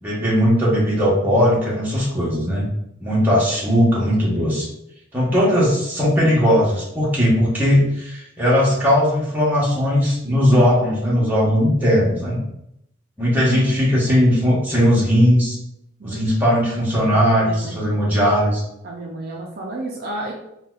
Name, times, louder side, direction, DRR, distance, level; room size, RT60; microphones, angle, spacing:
voice 1, 0.0-2.7 3.0-4.7 5.1-12.4 13.2-15.6 16.0-18.6, equal, 10° right, -6 dB, 0.8 m, -18 dB
voice 2, 17.0-17.7 18.8-20.3, right 2 dB, 45° right, -2 dB, 0.4 m, -32 dB
3.9 x 2.1 x 2.3 m, 0.81 s
head